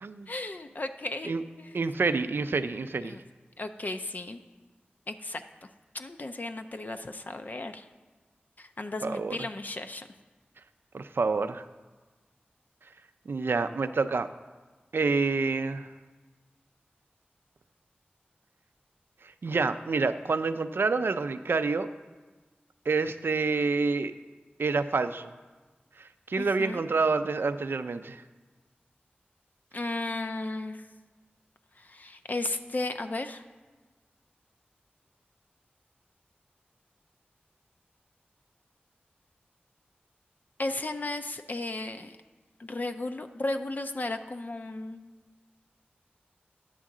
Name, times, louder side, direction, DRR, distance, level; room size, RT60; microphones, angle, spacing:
voice 1, 0.3-1.3 1.6-1.8 3.0-3.2 3.6-4.4 5.1-5.4 5.9-7.9 8.6-10.1 26.4-26.9 29.7-30.9 31.8-33.4 40.6-42.2 42.6-45.1, left 2 dB, 50° left, 7 dB, 0.4 m, -35 dB
voice 2, 1.7-3.2 9.0-9.5 10.9-11.6 13.3-14.3 14.9-15.9 19.4-21.9 22.9-24.1 24.6-25.3 26.0-28.2, right 4 dB, 80° right, 11 dB, 0.3 m, -28 dB
9.9 x 3.7 x 7.2 m, 1.3 s
wide cardioid pair, 60°, 4 cm